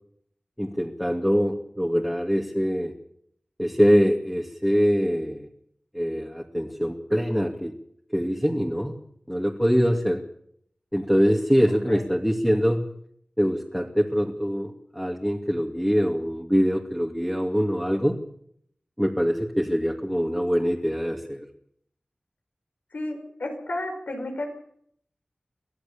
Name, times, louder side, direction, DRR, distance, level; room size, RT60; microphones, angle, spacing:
voice 1, 0.6-2.9 3.6-5.5 5.9-7.8 8.1-9.0 9.3-10.2 10.9-12.8 13.4-18.2 19.0-21.5, equal, ahead, 0 dB, 2.6 m, -24 dB
voice 2, 11.7-12.2 22.9-24.5, left 1 dB, 85° left, 4 dB, 5.8 m, -33 dB
24.5 x 16.5 x 7.3 m, 0.68 s
wide cardioid pair, 55°, 3 cm